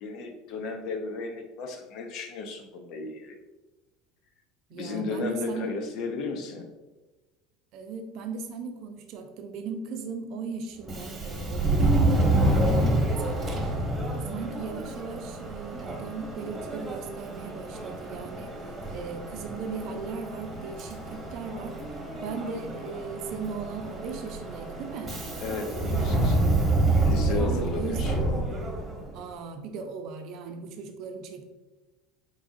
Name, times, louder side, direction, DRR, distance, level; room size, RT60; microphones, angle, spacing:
voice 1, 0.0-3.4 4.7-6.7 25.4-26.7 27.0-28.6, left 3 dB, 60° left, 5 dB, 0.7 m, -34 dB
voice 2, 4.7-5.7 7.7-13.7 14.3-21.8 22.2-25.2 27.2-28.2 29.1-31.5, right 5 dB, 60° right, 6 dB, 0.5 m, -38 dB
Subway metro underground, 10.8-29.2, right 2 dB, 25° right, 1.1 m, -28 dB
3.9 x 3.6 x 2.5 m, 1.1 s
hypercardioid pair, 85°, 0 cm